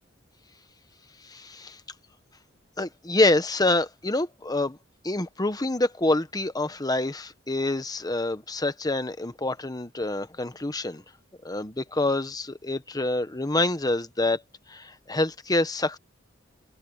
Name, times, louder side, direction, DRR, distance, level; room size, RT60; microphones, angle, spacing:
voice 1, 1.2-1.8 2.8-4.8 5.0-11.0 11.4-14.4 14.7-16.0, left 2 dB, 20° left, 1.2 m, -26 dB
open air
head